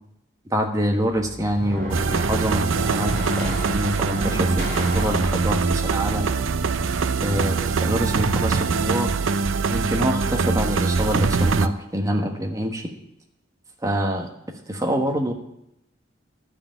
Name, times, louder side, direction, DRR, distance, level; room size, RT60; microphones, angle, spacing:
voice 1, 0.4-6.5 7.2-9.1 9.7-12.9 13.8-14.3 14.7-15.3, equal, 15° right, 2 dB, 1.4 m, -26 dB
sound 1, 1.1-7.3, equal, 45° right, 4.1 m, -33 dB
sound 2, 1.9-11.7, right 4 dB, 85° right, 0.6 m, -23 dB
12.0 x 5.8 x 8.9 m, 0.81 s
head